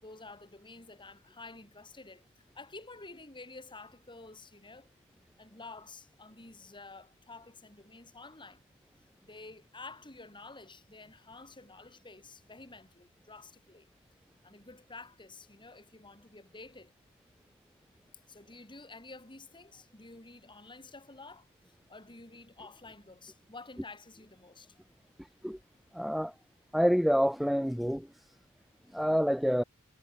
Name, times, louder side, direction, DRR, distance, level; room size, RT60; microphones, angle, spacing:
voice 1, 0.0-4.9 5.4-8.6 9.2-13.9 14.4-16.9 18.3-24.8, left 3 dB, 20° left, 3.8 m, -50 dB
voice 2, 25.9-26.3 26.7-28.1 28.9-29.6, equal, ahead, 0.9 m, -27 dB
head